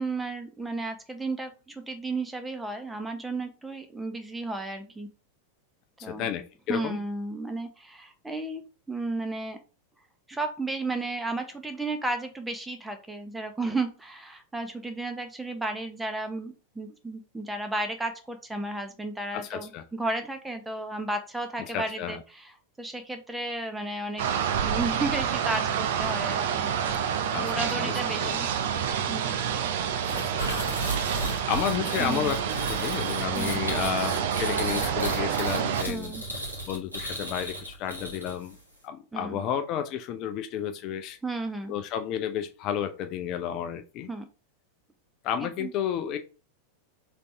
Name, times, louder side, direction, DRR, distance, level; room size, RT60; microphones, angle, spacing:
voice 1, 0.0-5.1 6.0-6.3 6.7-9.6 10.3-24.2 24.6-27.0 27.4-28.5 29.1-29.3 32.0-32.3 33.3-33.6 35.9-36.3 39.1-39.4 41.2-41.8 44.1-44.3 45.4-45.7, right 2 dB, 5° right, 6 dB, 0.8 m, -33 dB
voice 2, 6.0-7.0 19.3-19.8 21.7-22.2 27.3-27.9 28.2-28.4 30.1-30.4 30.7-30.8 31.1-36.1 36.7-38.6 38.8-41.2 41.7-44.1 45.2-46.2, left 9 dB, 40° left, 8 dB, 0.4 m, -32 dB
sound 1, 24.2-35.8, right 8 dB, 55° right, 0.7 m, -28 dB
sound 2, 30.0-38.5, right 1 dB, 85° right, 1.7 m, -34 dB
4.0 x 3.4 x 3.3 m, 0.34 s
figure-of-eight pair, 90°, 0 cm